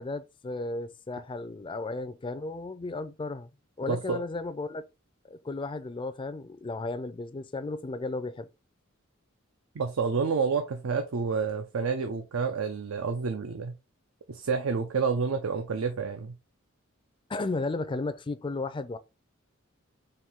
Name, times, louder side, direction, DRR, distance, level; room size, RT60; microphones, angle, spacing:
voice 1, 0.0-3.5 3.8-4.8 5.3-8.5 17.3-19.0, left 3 dB, 25° left, 0.4 m, -34 dB
voice 2, 3.9-4.2 9.8-13.7 14.3-16.4, right 5 dB, 85° right, 0.5 m, -29 dB
4.4 x 2.6 x 3.5 m
head